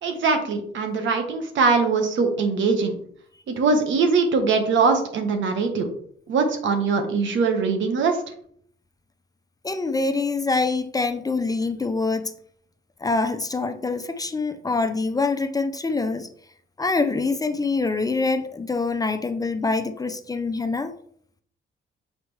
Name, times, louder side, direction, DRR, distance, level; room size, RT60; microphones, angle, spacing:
voice 1, 0.0-3.0 3.5-5.9 6.3-8.2, right 4 dB, 70° right, 5 dB, 1.3 m, -22 dB
voice 2, 9.6-12.3 13.0-16.3 16.8-20.9, left 3 dB, 20° left, 8 dB, 0.5 m, -25 dB
6.7 x 4.4 x 3.2 m, 0.63 s
cardioid pair, 90°, 20 cm